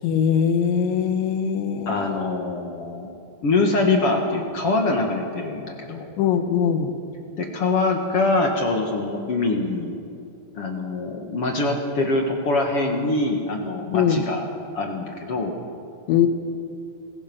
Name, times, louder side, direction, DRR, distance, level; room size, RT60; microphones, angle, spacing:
voice 1, 0.0-2.2 6.2-7.0 13.9-14.2 16.1-16.3, left 8 dB, 80° left, 7 dB, 3.7 m, -21 dB
voice 2, 1.9-3.1 3.4-6.1 7.4-10.0 10.5-14.4 14.7-15.6, left 2 dB, 50° left, 2 dB, 1.7 m, -24 dB
27.5 x 21.5 x 6.1 m, 2.6 s
omnidirectional pair, 5.2 m